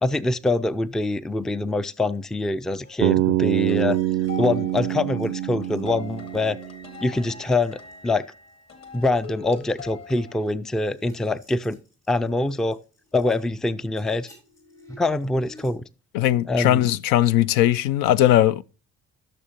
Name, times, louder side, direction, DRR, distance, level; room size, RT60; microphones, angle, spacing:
voice 1, 0.0-4.0 4.4-6.6 7.0-8.3 8.9-11.8 12.1-12.8 13.1-14.3 14.9-15.8 16.5-16.9, left 2 dB, ahead, 0.4 m, -24 dB
sound 1, 2.8-10.4, left 4 dB, 45° left, 1.9 m, -43 dB
Bass guitar, 3.0-7.1, right 14 dB, 50° right, 0.5 m, -25 dB
sound 2, 3.9-6.8 7.0-7.3 7.6-8.0 8.5-8.6 9.2-9.3 9.6-13.3 13.8-15.7, left 1 dB, 80° left, 4.9 m, -52 dB
voice 2, 16.1-18.6, left 13 dB, 60° left, 0.5 m, -19 dB
14.0 x 6.7 x 2.9 m
figure-of-eight pair, 45°, 37 cm